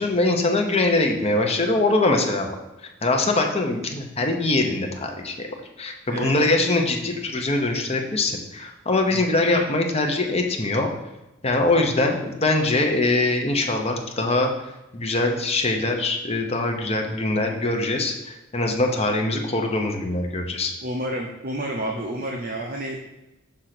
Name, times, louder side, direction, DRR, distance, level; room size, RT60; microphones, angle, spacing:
voice 1, 0.0-2.6 3.0-5.5 5.8-10.9 11.4-14.5 14.9-20.7, left 2 dB, 30° left, 3 dB, 0.9 m, -23 dB
voice 2, 6.1-6.5 9.1-9.2 20.8-23.0, right 1 dB, 45° right, 1 dB, 0.7 m, -29 dB
6.5 x 3.6 x 5.9 m, 0.98 s
head